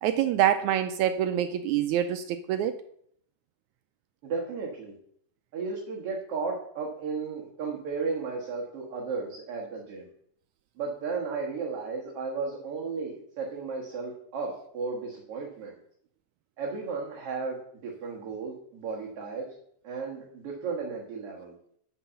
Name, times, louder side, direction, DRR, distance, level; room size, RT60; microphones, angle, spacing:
voice 1, 0.0-2.8, right 10 dB, 80° right, 9 dB, 1.8 m, -26 dB
voice 2, 4.2-5.0 5.5-10.1 10.8-15.8 16.6-19.5 19.8-21.5, right 4 dB, 50° right, -2 dB, 2.3 m, -34 dB
11.0 x 4.6 x 6.9 m, 0.67 s
omnidirectional pair, 3.7 m